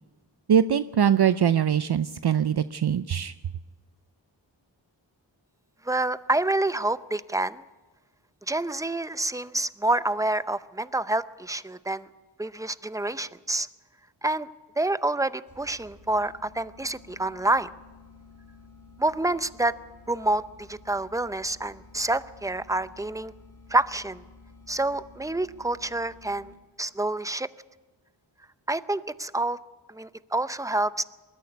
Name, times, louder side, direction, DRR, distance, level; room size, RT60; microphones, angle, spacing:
voice 1, 0.5-3.3, right 8 dB, 60° right, 13 dB, 0.6 m, -22 dB
voice 2, 5.8-7.6 8.5-12.1 12.4-13.7 14.2-14.5 14.8-17.7 19.0-19.7 20.1-23.3 23.7-24.2 24.7-26.5 26.8-27.5 28.7-29.6 29.9-31.0, right 2 dB, 5° right, 14 dB, 0.6 m, -27 dB
sound 1, 15.5-26.9, left 3 dB, 35° right, 7.7 m, -52 dB
20.0 x 13.5 x 9.5 m, 1.2 s
wide cardioid pair, 60°, 45 cm